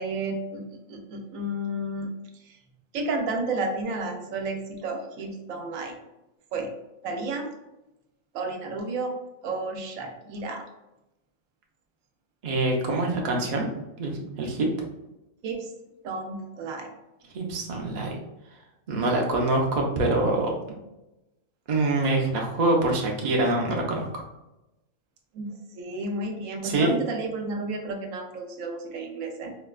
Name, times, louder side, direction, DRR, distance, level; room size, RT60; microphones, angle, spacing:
voice 1, 0.0-2.1 2.4-2.6 2.9-6.0 6.5-6.7 7.0-7.5 8.3-9.1 9.4-10.6 15.4-15.7 16.0-16.9 25.3-29.6, right 2 dB, 90° right, 4 dB, 1.0 m, -32 dB
voice 2, 12.4-13.7 14.0-14.7 17.3-18.2 18.9-20.5 21.7-24.2 26.6-26.9, right 2 dB, 50° right, 0 dB, 0.5 m, -25 dB
4.2 x 2.2 x 2.3 m, 0.95 s
omnidirectional pair, 1.4 m